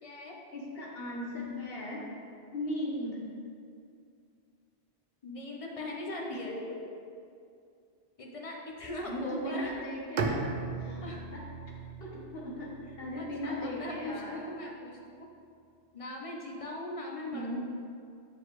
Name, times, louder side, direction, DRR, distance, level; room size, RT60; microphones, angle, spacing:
voice 1, 0.0-0.4 5.2-6.6 8.2-9.7 10.8-11.2 13.2-15.3 15.9-17.6, left 1 dB, 35° left, -1 dB, 0.7 m, -40 dB
voice 2, 0.5-2.0 2.5-3.2 9.1-10.4 10.8-11.0 12.0-14.4 17.3-17.6, left 1 dB, 65° left, -4 dB, 1.3 m, -37 dB
Bowed string instrument, 10.2-14.1, right 4 dB, 55° right, 0.5 m, -37 dB
7.8 x 4.7 x 3.1 m, 2.3 s
omnidirectional pair, 1.1 m